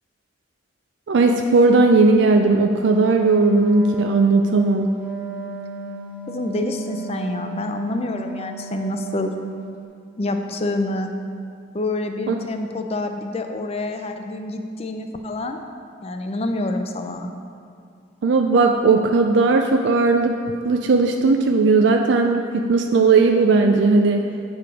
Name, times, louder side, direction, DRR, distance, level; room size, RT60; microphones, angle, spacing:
voice 1, 1.1-4.9 12.3-12.4 18.2-20.4 20.6-24.2, right 3 dB, 70° right, 3 dB, 0.4 m, -17 dB
Wind instrument woodwind instrument, 3.1-9.6, right 1 dB, 10° right, 0.9 m, -35 dB
voice 2, 6.3-9.3 10.2-11.1 11.7-15.6 16.0-17.3, left 2 dB, 35° left, 5 dB, 0.5 m, -27 dB
8.4 x 4.7 x 5.1 m, 2.4 s
head